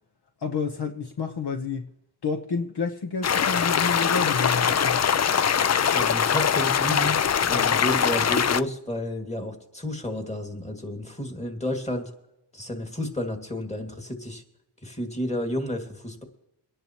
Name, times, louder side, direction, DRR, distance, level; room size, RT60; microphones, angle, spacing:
voice 1, 0.4-1.9 2.2-5.0 7.5-7.8, left 5 dB, 55° left, 1.1 m, -29 dB
sound 1, 3.2-8.6, left 7 dB, 35° left, 0.4 m, -22 dB
voice 2, 5.9-12.1 12.5-14.4 14.8-16.2, left 1 dB, 15° left, 2.2 m, -31 dB
24.0 x 10.5 x 3.0 m
cardioid pair, 65°, 46 cm